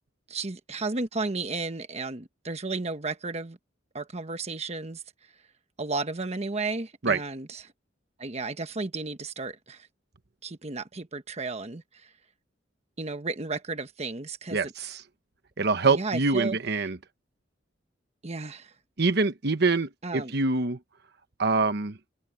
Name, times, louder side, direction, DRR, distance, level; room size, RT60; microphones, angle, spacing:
voice 1, 0.3-3.6 3.9-5.0 5.8-7.6 8.2-9.9 10.4-12.1 13.0-14.6 15.9-16.9 18.2-18.7 20.0-20.3, right 3 dB, 35° right, 1.1 m, -33 dB
voice 2, 14.5-15.0 15.6-17.0 19.0-20.8 21.4-22.0, right 3 dB, 60° right, 1.1 m, -25 dB
open air
head